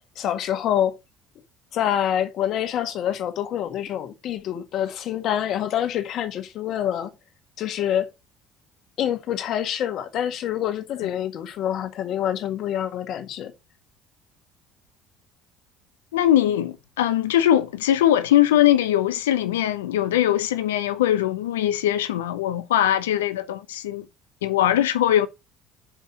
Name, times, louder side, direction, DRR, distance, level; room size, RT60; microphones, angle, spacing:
voice 1, 0.1-1.0 1.7-7.1 7.6-8.1 9.0-13.5, left 10 dB, 55° left, 1.7 m, -26 dB
voice 2, 16.1-24.0 24.4-25.3, left 12 dB, 75° left, 0.9 m, -21 dB
6.2 x 5.4 x 5.5 m
figure-of-eight pair, 55°, 0 cm